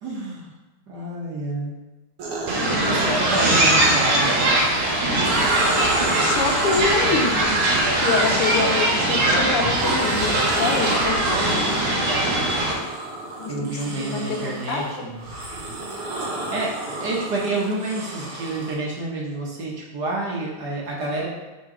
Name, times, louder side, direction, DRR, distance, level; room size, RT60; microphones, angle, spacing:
voice 1, 0.0-0.5 0.9-1.8 2.8-4.7 5.0-5.3 13.5-15.2 16.5-21.3, right 2 dB, 55° right, -3 dB, 1.4 m, -29 dB
sound 1, 2.2-4.5 5.0-9.1 9.6-18.8, right 2 dB, 90° right, 2.1 m, -31 dB
sound 2, 2.5-12.7, right 1 dB, 75° right, 2.0 m, -21 dB
voice 2, 2.6-3.2 6.1-7.5 8.0-12.1 13.4-13.5 13.9-15.1, left 4 dB, 85° left, 2 dB, 1.8 m, -26 dB
5.2 x 3.9 x 5.9 m, 1.1 s
omnidirectional pair, 2.4 m